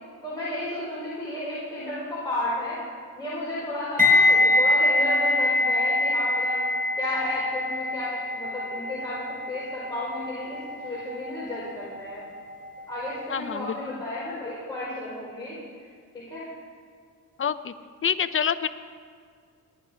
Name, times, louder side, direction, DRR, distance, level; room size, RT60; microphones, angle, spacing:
voice 1, 0.2-2.8 3.1-6.6 7.0-12.2 12.9-15.6 16.1-16.5, left 1 dB, 10° left, -9 dB, 4.6 m, -33 dB
sound 1, 4.0-12.9 13.2-13.5, left 2 dB, 20° right, 1.4 m, -24 dB
voice 2, 13.3-13.8 17.4-17.7 18.0-18.7, left 7 dB, 35° left, 12 dB, 0.7 m, -26 dB
20.5 x 9.5 x 5.0 m, 2.1 s
cardioid pair, 100°, 37 cm